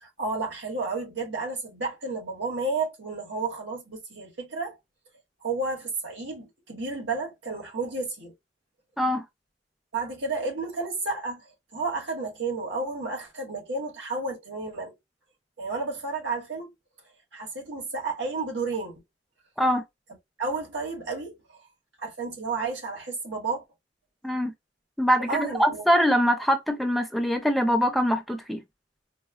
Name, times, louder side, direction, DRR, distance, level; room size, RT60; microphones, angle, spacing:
voice 1, 0.0-4.8 5.4-8.3 9.9-14.9 15.6-16.7 17.3-19.0 20.4-21.6 22.0-23.6 25.3-25.8, right 3 dB, 80° right, 1.4 m, -32 dB
voice 2, 25.0-28.6, equal, ahead, 0.4 m, -23 dB
4.3 x 2.0 x 2.2 m
head